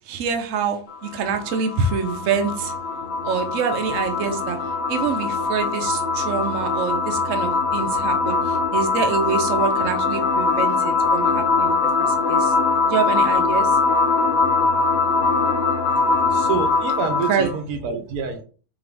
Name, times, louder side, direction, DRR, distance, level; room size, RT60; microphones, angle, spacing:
voice 1, 0.1-2.7 3.2-4.6 4.9-12.5 12.8-13.7 17.3-17.5, right 6 dB, 65° right, 5 dB, 0.9 m, -26 dB
sound 1, 0.9-17.5, left 4 dB, 55° left, 0.7 m, -22 dB
sound 2, 1.8-16.8, right 1 dB, 80° left, 1.1 m, -40 dB
voice 2, 16.3-18.4, right 5 dB, 85° right, 6 dB, 1.2 m, -27 dB
3.8 x 3.0 x 3.3 m, 0.39 s
omnidirectional pair, 1.5 m